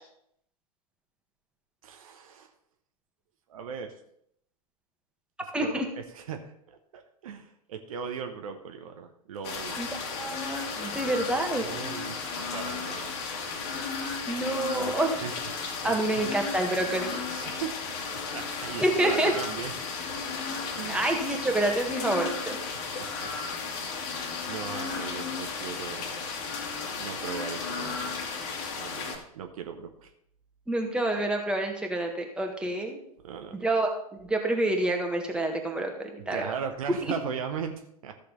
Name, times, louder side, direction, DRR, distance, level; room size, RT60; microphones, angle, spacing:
voice 1, 1.8-2.5 3.5-3.9 5.6-9.8 11.0-11.2 11.5-13.1 14.7-14.9 15.2-15.5 15.8-16.2 17.3-17.8 18.3-19.7 20.7-21.0 22.7-23.3 24.5-26.3 27.0-28.2 28.8-30.1 32.6-32.7 33.2-33.6 36.3-38.2, right 7 dB, 65° right, 6 dB, 1.1 m, -38 dB
voice 2, 5.5-5.8 9.8-9.9 10.2-11.6 14.3-15.1 15.8-17.3 18.8-19.3 20.9-22.6 30.7-33.0 33.5-33.9 34.2-36.4, right 1 dB, 5° right, 2 dB, 1.7 m, -27 dB
sound 1, 9.4-29.2, left 5 dB, 45° left, 2.0 m, -34 dB
13.5 x 6.5 x 4.0 m, 0.71 s
figure-of-eight pair, 100°, 20 cm